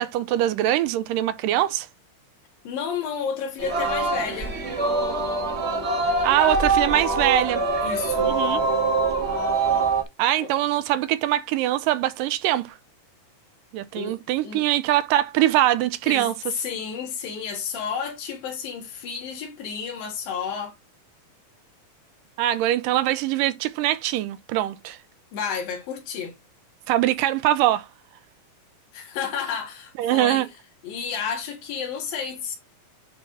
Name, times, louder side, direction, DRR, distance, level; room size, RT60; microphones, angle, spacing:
voice 1, 0.0-1.9 6.2-7.6 8.2-8.6 10.2-12.6 13.7-16.5 22.4-25.0 26.9-27.9 30.0-30.5, right 13 dB, 80° right, 2.1 m, -23 dB
voice 2, 2.7-4.6 7.8-8.4 10.4-10.5 13.9-14.2 14.4-14.6 16.1-20.7 25.3-26.4 28.9-30.5 30.8-32.6, left 6 dB, 80° left, 3.6 m, -31 dB
Singing, 3.6-10.0, right 3 dB, 30° right, 1.4 m, -24 dB
9.6 x 3.4 x 4.1 m
omnidirectional pair, 4.0 m